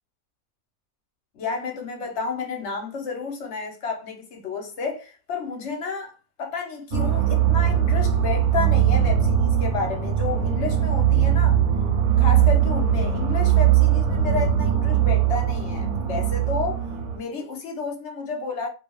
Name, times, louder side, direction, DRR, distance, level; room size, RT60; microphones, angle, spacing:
voice 1, 1.3-11.6 12.2-16.8 17.1-18.7, left 5 dB, 60° left, 0.8 m, -31 dB
sound 1, 6.9-17.2, right 10 dB, 75° right, 1.0 m, -20 dB
2.4 x 2.3 x 2.9 m
omnidirectional pair, 1.7 m